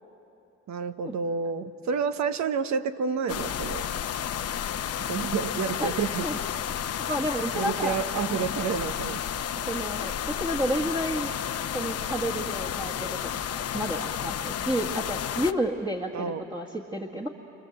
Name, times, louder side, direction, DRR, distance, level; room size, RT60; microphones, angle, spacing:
voice 1, 0.7-3.9 5.1-6.3 7.5-9.2 16.1-16.4, right 6 dB, 65° right, 10 dB, 1.2 m, -29 dB
sound 1, 3.3-15.5, left 9 dB, 55° left, 0.8 m, -32 dB
voice 2, 7.1-8.0 8.3-8.5 9.6-11.3 11.7-13.2 13.5-17.3, equal, 15° right, 1 dB, 1.8 m, -31 dB
28.5 x 25.5 x 8.0 m, 2.9 s
cardioid pair, 90°, 30 cm